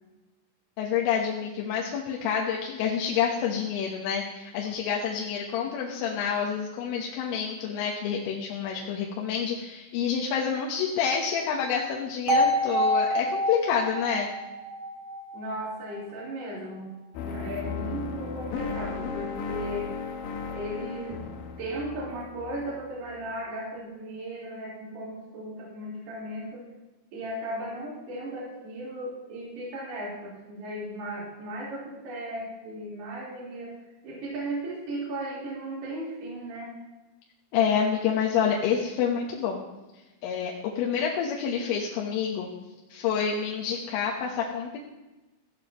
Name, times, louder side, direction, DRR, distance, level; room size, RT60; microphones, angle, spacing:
voice 1, 0.8-14.3 37.5-39.6 40.2-42.5 42.9-44.8, left 7 dB, 90° left, -2 dB, 3.7 m, -28 dB
sound 1, 12.3-16.3, equal, 30° right, 3.7 m, -27 dB
voice 2, 15.3-16.9 17.2-19.9 20.5-21.2 21.6-26.7 27.1-33.8 34.0-36.8, right 1 dB, 55° right, -7 dB, 5.8 m, -36 dB
sound 2, 17.1-23.2, left 5 dB, 70° left, 2.2 m, -35 dB
16.0 x 15.0 x 3.0 m, 1.1 s
omnidirectional pair, 5.6 m